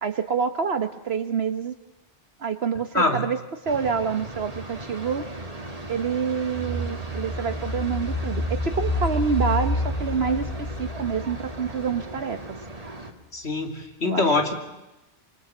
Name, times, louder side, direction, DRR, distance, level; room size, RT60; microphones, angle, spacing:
voice 1, 0.0-1.7 2.4-5.2 5.9-12.4 14.0-14.2, right 6 dB, 70° right, 8 dB, 1.3 m, -27 dB
sound 1, 3.6-13.1, right 2 dB, 35° right, 2.2 m, -37 dB
sound 2, 6.5-12.2 12.6-12.7, left 1 dB, 25° left, 6.9 m, -29 dB
voice 2, 13.3-14.5, left 2 dB, 90° left, 4 dB, 3.3 m, -23 dB
26.5 x 25.5 x 7.2 m, 1.0 s
omnidirectional pair, 1.1 m